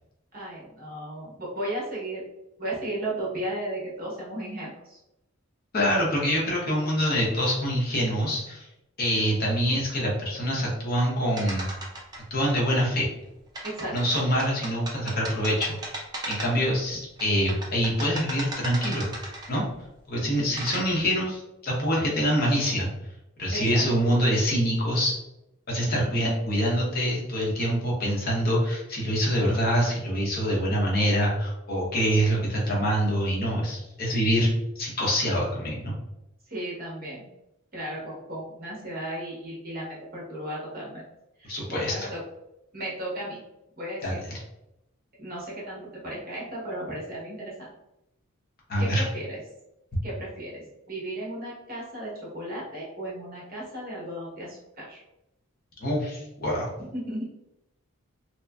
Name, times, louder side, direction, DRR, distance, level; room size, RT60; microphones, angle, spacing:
voice 1, 0.3-2.2 2.6-5.0 13.6-13.9 23.5-23.8 25.9-26.3 36.5-37.2 37.7-41.0 41.4-42.2 42.7-43.4 43.8-44.2 45.2-47.7 48.8-49.4 50.0-55.0 56.9-57.2, right 1 dB, 45° right, -5 dB, 1.0 m, -35 dB
voice 2, 5.7-8.7 9.0-11.7 12.3-13.1 13.9-15.8 16.3-19.1 19.5-19.6 20.1-22.9 23.4-25.2 25.7-34.5 34.8-35.9 41.5-42.1 44.0-44.4 48.7-49.0 55.8-56.7, equal, 45° left, -3 dB, 0.7 m, -25 dB
sound 1, 11.4-12.4 13.5-16.7 17.2-19.7 20.3-20.8, right 1 dB, 20° right, 0.5 m, -36 dB
2.8 x 2.4 x 2.2 m, 0.89 s
head